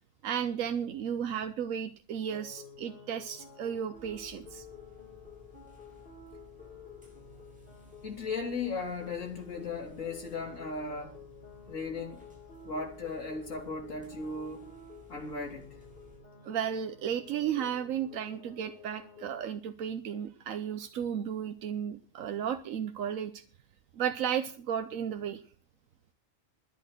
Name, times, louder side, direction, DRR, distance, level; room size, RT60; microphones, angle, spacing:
voice 1, 0.2-4.6 16.4-23.4 24.0-25.4, right 8 dB, 85° right, 9 dB, 1.2 m, -34 dB
sound 1, 2.3-19.4, left 5 dB, 45° left, 2.5 m, -51 dB
sound 2, 3.9-16.2, left 2 dB, 5° right, 6.0 m, -57 dB
voice 2, 8.0-11.1 11.7-12.3 12.6-14.7 15.1-15.8, left 4 dB, 75° left, 0 dB, 3.5 m, -37 dB
12.5 x 10.5 x 6.6 m, 0.42 s
omnidirectional pair, 1.3 m